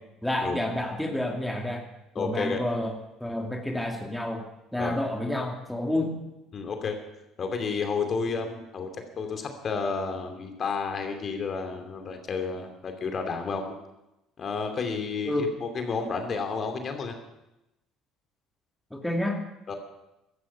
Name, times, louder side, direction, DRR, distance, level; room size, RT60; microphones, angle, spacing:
voice 1, 0.2-1.9 2.2-2.9 3.2-4.5 4.7-6.2 15.2-15.5 18.9-19.4, left 1 dB, 5° left, 2 dB, 2.3 m, -29 dB
voice 2, 2.1-2.6 4.8-5.0 5.9-6.0 6.5-7.0 7.4-13.8 14.4-17.1 19.7-19.8, left 5 dB, 45° left, 5 dB, 2.6 m, -31 dB
15.5 x 13.0 x 5.8 m, 0.92 s
hypercardioid pair, 60°, 0 cm